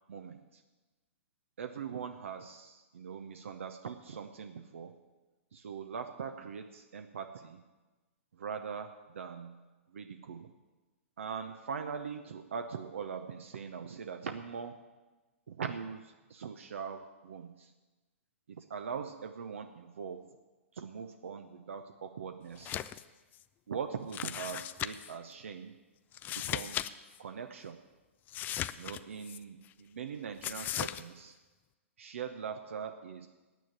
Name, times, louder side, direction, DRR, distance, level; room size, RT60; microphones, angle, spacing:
voice 1, 0.1-0.6 1.6-5.0 5.5-7.6 8.3-9.7 9.9-10.5 11.2-14.8 15.5-17.7 18.5-20.3 20.7-22.8 23.7-25.8 26.3-26.9 27.2-27.8 28.8-31.4 32.0-33.3, right 6 dB, 70° right, 7 dB, 0.8 m, -41 dB
sound 1, 22.5-23.0 23.3-23.4 24.1-25.1 26.1-26.9 27.1-27.2 28.3-29.4 30.4-31.0, left 12 dB, 25° left, 0.4 m, -37 dB
9.3 x 8.8 x 9.4 m, 1.2 s
hypercardioid pair, 115°, 7 cm